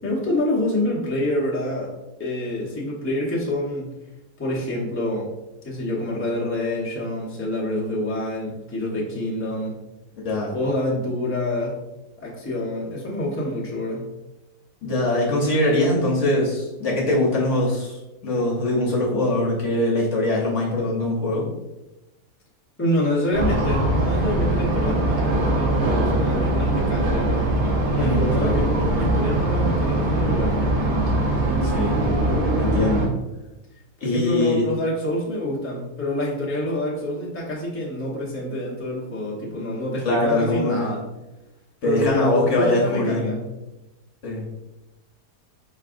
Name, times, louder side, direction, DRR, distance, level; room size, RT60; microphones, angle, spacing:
voice 1, 0.0-1.9 2.2-3.9 4.4-5.3 5.6-9.8 10.5-11.7 12.2-14.1 22.8-27.6 28.0-30.6 34.0-41.0 41.8-43.4, left 1 dB, 15° left, -5 dB, 0.5 m, -27 dB
voice 2, 14.8-21.5 27.9-28.6 31.6-32.0 32.6-33.1 34.0-34.6 40.0-41.0 41.8-43.4 44.2-44.4, left 2 dB, 55° left, -3 dB, 1.0 m, -22 dB
sound 1, 23.3-33.1, right 1 dB, 50° right, 1.0 m, -22 dB
4.7 x 3.3 x 2.5 m, 1.0 s
omnidirectional pair, 1.7 m